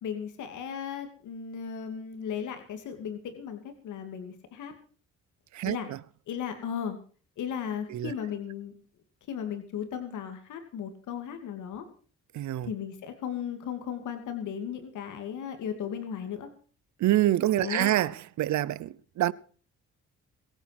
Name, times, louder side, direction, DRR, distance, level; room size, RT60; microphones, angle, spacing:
voice 1, 0.0-4.7 5.6-5.9 6.3-7.0 7.4-8.7 9.3-11.9 12.6-16.5 17.6-17.9, left 8 dB, 80° left, 2.7 m, -36 dB
voice 2, 5.5-6.0 7.9-8.1 12.3-12.7 17.0-19.3, right 14 dB, 70° right, 0.8 m, -26 dB
22.0 x 9.2 x 6.0 m
cardioid pair, 90°, 30 cm